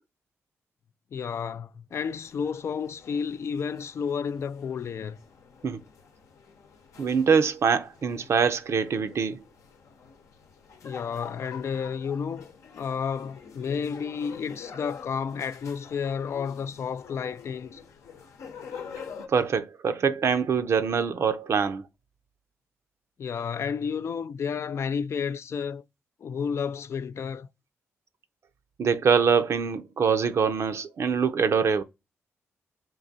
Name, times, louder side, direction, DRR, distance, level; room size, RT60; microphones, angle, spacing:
voice 1, 1.1-5.2 10.8-12.5 12.8-17.8 23.2-25.8 26.2-27.5, left 6 dB, 60° left, 0.3 m, -31 dB
sound 1, 1.9-19.3, left 6 dB, 80° left, 0.8 m, -47 dB
voice 2, 7.0-9.4 19.3-21.9 28.8-31.8, right 6 dB, 60° right, 0.5 m, -24 dB
3.8 x 2.6 x 4.0 m
cardioid pair, 60°, 5 cm